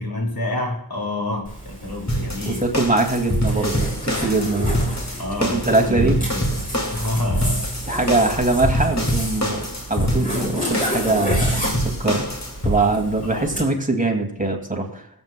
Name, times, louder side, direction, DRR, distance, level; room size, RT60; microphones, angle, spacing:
voice 1, 0.0-2.6 4.2-4.4 5.2-7.7 13.3-13.8, left 1 dB, 65° left, 0 dB, 2.6 m, -28 dB
Zipper (clothing), 1.4-13.6, equal, 20° left, 3.6 m, -31 dB
sound 1, 2.1-12.8, equal, 40° left, 2.4 m, -25 dB
voice 2, 2.5-4.8 5.4-6.2 7.9-12.3 12.6-15.0, right 2 dB, 20° right, 2 dB, 2.1 m, -22 dB
21.5 x 8.1 x 2.2 m, 0.72 s
wide cardioid pair, 65°, 39 cm